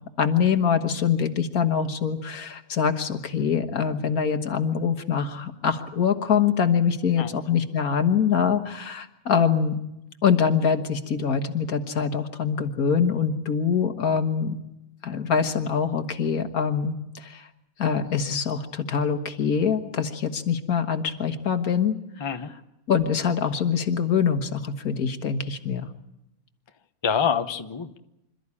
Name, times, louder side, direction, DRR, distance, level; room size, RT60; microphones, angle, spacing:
voice 1, 0.2-9.8 10.2-14.6 15.0-17.5 17.8-22.4 22.9-25.9, left 7 dB, 75° left, 8 dB, 1.9 m, -24 dB
voice 2, 22.2-22.5 27.0-28.0, left 7 dB, 25° left, 8 dB, 0.8 m, -26 dB
26.5 x 13.5 x 9.8 m, 0.90 s
omnidirectional pair, 1.6 m